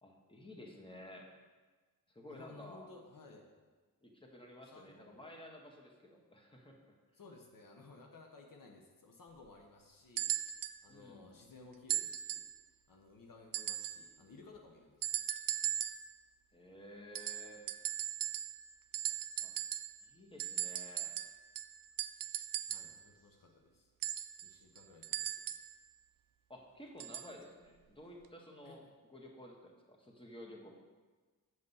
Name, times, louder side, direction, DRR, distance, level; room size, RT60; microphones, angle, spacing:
voice 1, 0.0-1.3 2.1-2.9 4.0-6.9 10.9-11.3 16.5-17.6 19.4-19.5 20.0-21.1 26.5-28.8 29.1-30.7, left 1 dB, 15° left, 0 dB, 1.6 m, -53 dB
voice 2, 2.3-3.5 4.7-5.2 7.1-12.5 12.9-15.2 15.6-15.8 22.7-23.9 24.4-25.3 28.6-28.8, left 3 dB, 65° left, 1 dB, 1.0 m, -57 dB
sound 1, 10.2-10.8 11.9-12.6 13.5-14.1 15.0-16.1 17.1-18.7 18.9-20.0 20.4-23.0 24.0-25.7 27.0-27.3 28.2-28.3, right 11 dB, 65° right, 0.5 m, -38 dB
7.9 x 5.4 x 5.6 m, 1.4 s
cardioid pair, 60°, 36 cm